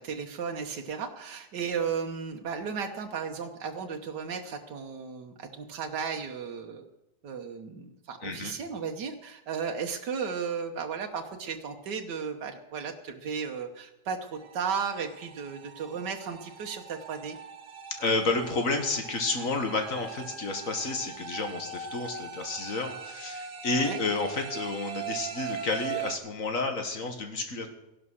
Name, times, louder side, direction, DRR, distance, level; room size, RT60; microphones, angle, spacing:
voice 1, 0.0-6.8 7.2-17.4 23.7-24.0, right 6 dB, 85° right, 3 dB, 1.7 m, -35 dB
voice 2, 8.2-8.6 18.0-27.7, left 3 dB, 55° left, 6 dB, 1.9 m, -30 dB
sound 1, 14.3-26.2, right 6 dB, 70° right, 1.8 m, -41 dB
15.0 x 11.5 x 6.3 m, 0.96 s
omnidirectional pair, 1.8 m